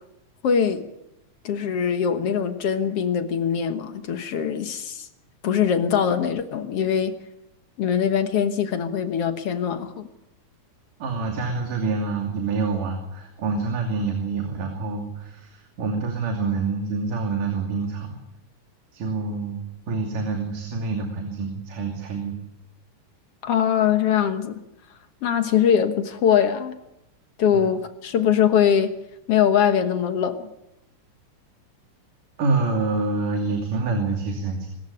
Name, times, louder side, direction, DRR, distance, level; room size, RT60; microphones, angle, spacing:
voice 1, 0.4-0.9 1.4-5.1 5.4-7.2 7.8-10.1 23.4-24.6 25.2-26.8 27.4-28.9 29.3-30.5, left 8 dB, 55° left, 9 dB, 1.8 m, -22 dB
voice 2, 11.0-18.2 18.9-22.4 27.5-27.7 32.4-34.7, right 3 dB, 75° right, 3 dB, 4.3 m, -27 dB
24.0 x 14.5 x 9.9 m, 0.88 s
omnidirectional pair, 3.8 m